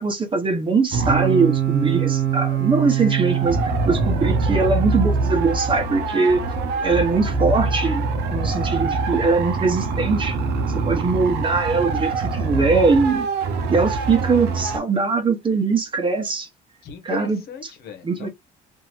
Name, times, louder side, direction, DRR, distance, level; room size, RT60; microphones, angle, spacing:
voice 1, 0.0-3.6 3.9-6.4 6.8-10.4 10.7-13.3 13.7-16.5 17.0-17.4 18.0-18.3, right 4 dB, 30° right, 1.1 m, -21 dB
sound 1, 0.9-14.8, right 5 dB, 80° right, 0.7 m, -23 dB
voice 2, 16.8-18.3, left 10 dB, 65° left, 1.1 m, -37 dB
2.9 x 2.8 x 2.3 m
cardioid pair, 110°, 17 cm